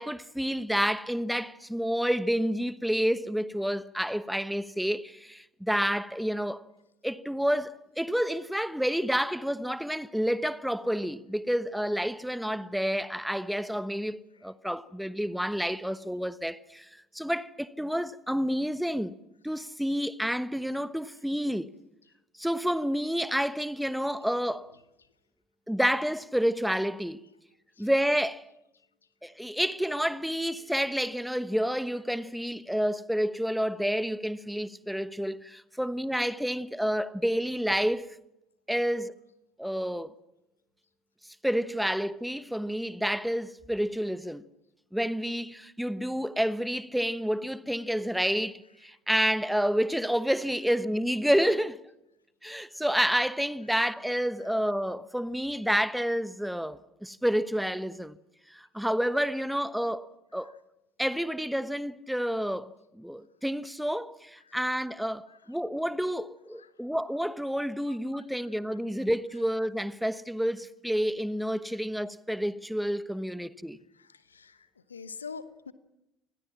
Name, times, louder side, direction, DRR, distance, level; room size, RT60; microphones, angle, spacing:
voice 1, 0.0-6.6 7.0-16.9 17.1-19.2 19.4-21.7 22.4-24.7 25.7-27.3 27.8-28.5 29.2-38.1 38.7-39.1 39.6-40.1 41.4-44.5 44.9-51.8 52.4-58.2 58.5-60.5 61.0-73.8, equal, ahead, 1.1 m, -29 dB
voice 2, 74.0-74.6 74.9-75.7, left 5 dB, 85° left, 1.0 m, -43 dB
27.0 x 20.5 x 7.4 m
figure-of-eight pair, 60°, 0 cm